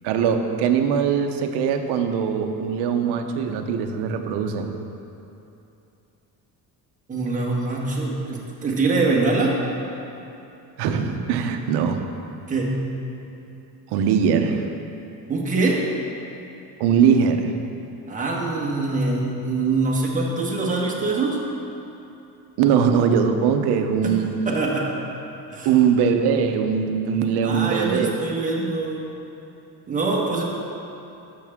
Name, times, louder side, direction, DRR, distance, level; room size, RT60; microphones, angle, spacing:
voice 1, 0.0-4.7 10.8-12.0 13.9-14.7 16.8-17.5 22.6-24.3 25.6-28.1, right 7 dB, 85° right, 6 dB, 0.8 m, -21 dB
voice 2, 7.1-9.6 12.5-12.8 15.3-15.8 18.1-21.4 24.0-24.1 24.4-24.9 25.5-25.7 27.4-29.1 29.9-30.4, right 3 dB, 20° right, -3 dB, 1.4 m, -24 dB
12.0 x 7.0 x 3.6 m, 2.9 s
cardioid pair, 150°, 39 cm